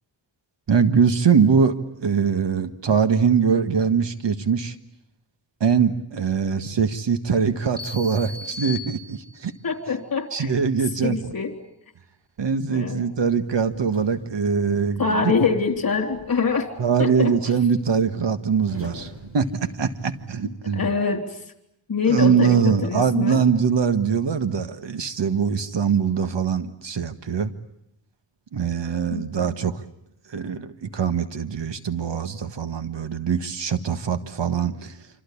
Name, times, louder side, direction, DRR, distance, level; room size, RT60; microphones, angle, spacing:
voice 1, 0.7-4.7 5.6-9.5 10.3-11.1 12.4-15.3 16.8-20.9 22.1-27.5 28.5-29.8 30.3-35.0, right 6 dB, 75° right, 10 dB, 1.7 m, -22 dB
sound 1, 7.8-9.6, left 3 dB, 10° right, 5.4 m, -37 dB
voice 2, 9.6-10.5 11.0-11.5 12.7-13.0 15.0-16.7 17.0-17.3 20.7-21.3 21.9-23.4 29.1-29.3, left 5 dB, 50° left, 5 dB, 3.7 m, -24 dB
sound 2, 13.1-20.5, right 1 dB, 30° right, 6.9 m, -45 dB
27.0 x 26.0 x 8.6 m, 0.81 s
wide cardioid pair, 115°, 44 cm